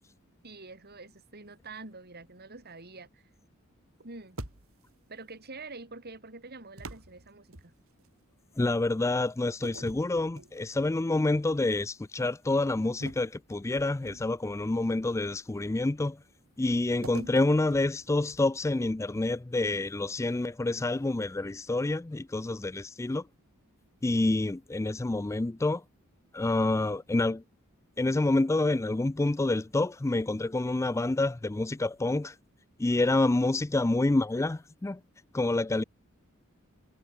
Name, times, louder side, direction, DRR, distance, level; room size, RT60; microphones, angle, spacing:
voice 1, 0.4-3.2 4.0-4.4 5.1-7.7, right 3 dB, 50° right, 3.8 m, -46 dB
sound 1, 4.4-5.0 6.8-8.1 9.6-11.0 11.4-11.7 13.0-14.5 17.0-18.7, right 2 dB, 70° right, 3.4 m, -46 dB
voice 2, 8.6-16.2 16.6-23.3 24.0-25.8 26.3-27.4 28.0-32.4 32.8-35.0 35.3-35.8, left 2 dB, 15° left, 0.4 m, -28 dB
head